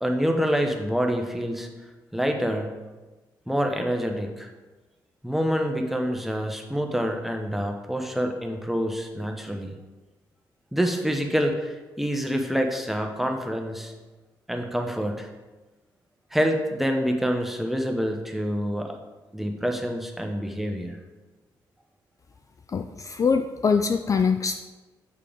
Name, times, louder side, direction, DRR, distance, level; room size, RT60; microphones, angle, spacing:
voice 1, 0.0-1.7 2.1-2.7 3.5-4.5 5.2-9.7 10.7-13.9 14.5-15.3 16.3-18.9 19.3-21.0, equal, ahead, 3 dB, 1.0 m, -26 dB
voice 2, 22.7-24.6, left 5 dB, 40° left, 7 dB, 0.4 m, -23 dB
6.7 x 5.1 x 3.6 m, 1.2 s
supercardioid pair, 60°, 9 cm